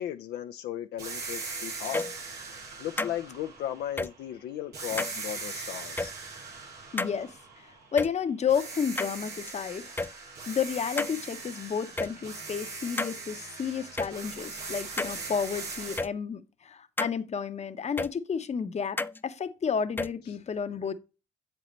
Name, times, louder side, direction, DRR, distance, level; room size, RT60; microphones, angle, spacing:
voice 1, 0.0-2.0 2.8-6.1, left 11 dB, 75° left, 0.5 m, -36 dB
sound 1, 1.0-4.3 4.7-8.1 8.5-16.0, right 4 dB, 80° right, 2.3 m, -40 dB
sound 2, 1.8-2.2 3.0-3.1 4.0-4.1 5.0-5.2 6.0-6.1 7.0-7.1 8.0-8.1 9.0-9.5 10.0-10.1 11.0-11.2 12.0-12.1 13.0-13.1 14.0-14.1 15.0-15.2 16.0-16.1 17.0-17.1 18.0-18.1 19.0-19.2 20.0-20.1, left 2 dB, 10° left, 0.3 m, -30 dB
voice 2, 6.9-9.8 10.5-20.9, left 7 dB, 40° left, 0.8 m, -31 dB
7.5 x 5.4 x 3.1 m
supercardioid pair, 65°, 17 cm